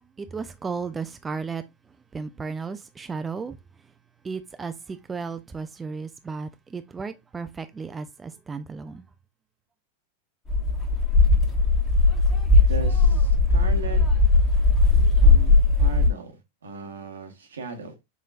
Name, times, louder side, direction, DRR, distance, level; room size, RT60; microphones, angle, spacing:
voice 1, 0.2-1.6 2.1-3.6 4.2-9.0, right 5 dB, 15° right, 0.3 m, -34 dB
sound 1, 10.5-16.1, left 3 dB, 20° left, 1.3 m, -18 dB
voice 2, 12.5-14.0 15.2-17.9, right 4 dB, 70° right, 1.1 m, -37 dB
5.9 x 3.1 x 2.4 m
figure-of-eight pair, 90°, 0 cm